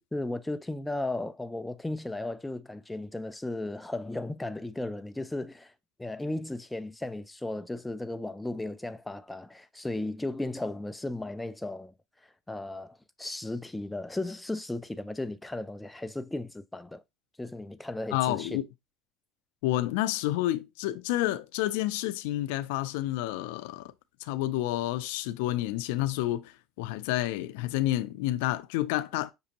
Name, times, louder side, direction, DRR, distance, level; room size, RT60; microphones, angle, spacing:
voice 1, 0.1-5.7 6.0-11.9 12.2-17.0 17.4-18.6, left 2 dB, 5° left, 0.4 m, -35 dB
voice 2, 18.1-18.6 19.6-23.9 24.2-29.3, left 15 dB, 85° left, 0.4 m, -29 dB
5.9 x 2.6 x 2.8 m
supercardioid pair, 115°, 0 cm